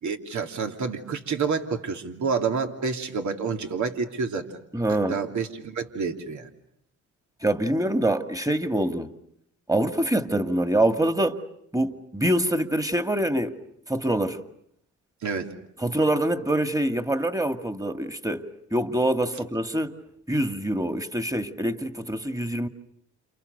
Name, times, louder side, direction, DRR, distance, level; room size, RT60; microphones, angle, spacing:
voice 1, 0.0-4.5 5.1-6.5 15.2-15.5, right 5 dB, 65° right, 3.0 m, -28 dB
voice 2, 4.7-5.2 7.4-9.1 9.7-11.4 11.7-13.6 13.9-14.4 15.8-18.4 18.7-19.9 20.3-22.7, right 1 dB, 10° right, 2.3 m, -25 dB
30.0 x 29.5 x 6.8 m
cardioid pair, 65°, 31 cm